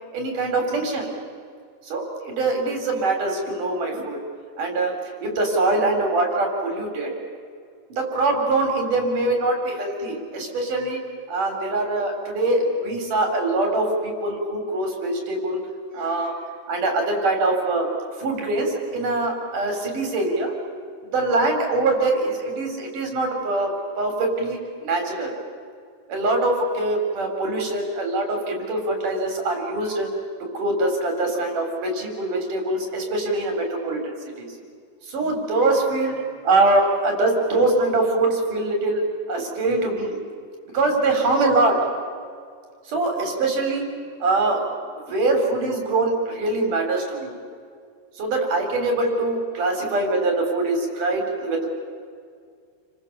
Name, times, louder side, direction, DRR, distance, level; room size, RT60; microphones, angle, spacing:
voice 1, 0.1-1.1 1.9-4.2 4.6-7.1 7.9-11.0 11.3-15.6 15.9-16.3 16.7-17.9 18.2-20.6 21.1-25.3 26.1-30.1 30.5-34.5 35.1-36.1 36.4-39.0 39.3-40.2 40.7-41.8 42.9-43.9 44.2-44.6 45.1-47.3 48.2-51.7, right 2 dB, 80° right, 3 dB, 5.6 m, -23 dB
30.0 x 24.0 x 7.0 m, 2.2 s
omnidirectional pair, 3.6 m